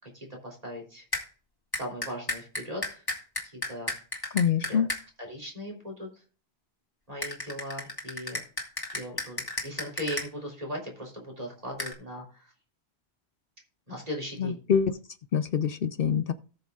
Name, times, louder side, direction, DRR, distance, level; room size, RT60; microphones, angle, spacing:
voice 1, 0.0-1.0 1.7-3.0 3.4-3.9 4.7-4.9 5.2-6.1 7.1-8.4 8.9-12.5 13.9-14.6, equal, 35° right, -1 dB, 3.4 m, -38 dB
sound 1, 1.1-1.2 1.7-5.0 7.2-10.3 11.8-11.9, left 1 dB, 20° left, 2.1 m, -33 dB
voice 2, 4.3-4.9 14.4-14.9 15.3-16.3, left 7 dB, 65° left, 11 dB, 0.8 m, -25 dB
18.0 x 6.8 x 2.4 m, 0.38 s
omnidirectional pair, 1.1 m